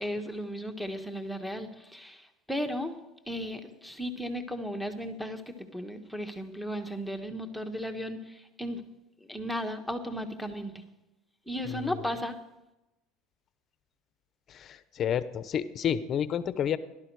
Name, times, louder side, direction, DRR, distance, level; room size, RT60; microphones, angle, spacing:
voice 1, 0.0-2.9 3.3-8.8 9.3-10.8 11.5-12.4, equal, ahead, 4 dB, 1.3 m, -35 dB
voice 2, 14.5-16.8, left 9 dB, 40° left, 14 dB, 0.8 m, -30 dB
17.5 x 12.0 x 4.8 m, 0.97 s
supercardioid pair, 120°, 0 cm